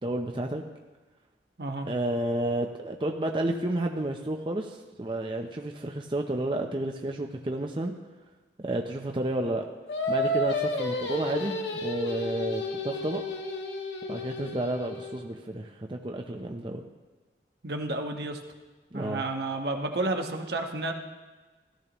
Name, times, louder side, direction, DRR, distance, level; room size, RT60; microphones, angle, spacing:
voice 1, 0.0-0.6 1.9-7.9 8.6-9.6 10.1-13.2 14.1-16.8 18.9-19.2, right 1 dB, 30° right, 3 dB, 0.6 m, -31 dB
Singing, 9.9-15.3, left 1 dB, 90° left, 1.5 m, -31 dB
voice 2, 17.6-18.4 18.9-20.9, right 2 dB, 65° right, 4 dB, 1.1 m, -31 dB
14.0 x 13.5 x 3.0 m, 1.2 s
head